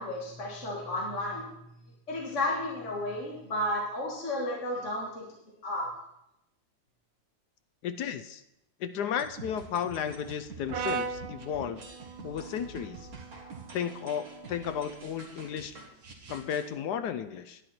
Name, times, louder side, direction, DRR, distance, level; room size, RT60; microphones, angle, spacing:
voice 1, 0.0-1.5 2.1-5.3 5.6-5.9, left 1 dB, 40° left, -3 dB, 2.1 m, -32 dB
voice 2, 7.8-8.4 8.8-11.8 12.2-13.1 13.7-15.8 16.3-17.6, left 8 dB, 70° left, 11 dB, 1.0 m, -34 dB
sound 1, 9.2-16.7, right 3 dB, 50° right, 2.0 m, -47 dB
Brass instrument, 10.7-14.9, right 5 dB, 75° right, 1.6 m, -39 dB
10.5 x 10.5 x 4.3 m, 0.84 s
omnidirectional pair, 2.1 m